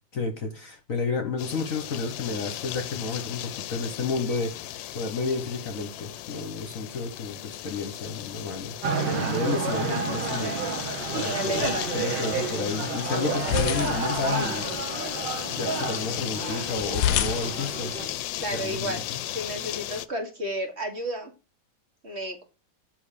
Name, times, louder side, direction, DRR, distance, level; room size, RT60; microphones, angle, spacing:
voice 1, 0.1-4.6 4.9-10.6 11.1-11.7 11.9-14.7 14.9-17.9 18.5-19.2, left 4 dB, 50° left, 1.3 m, -31 dB
sound 1, 1.4-20.1, left 14 dB, 90° left, 1.3 m, -36 dB
sound 2, 8.8-18.1, right 4 dB, 75° right, 2.1 m, -30 dB
sound 3, 11.0-19.0, left 10 dB, 70° left, 1.1 m, -33 dB
voice 2, 11.3-12.0 18.4-21.3 22.0-22.4, right 1 dB, 35° right, 1.7 m, -32 dB
5.7 x 5.5 x 6.6 m
omnidirectional pair, 2.0 m